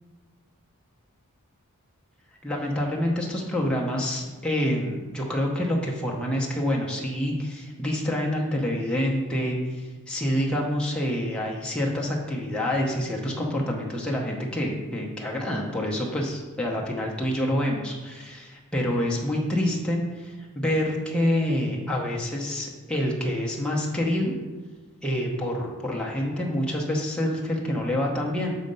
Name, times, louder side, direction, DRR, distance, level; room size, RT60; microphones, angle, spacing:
voice 1, 2.4-24.3 25.0-28.6, left 1 dB, 5° left, -3 dB, 0.8 m, -27 dB
6.5 x 4.2 x 5.4 m, 1.3 s
head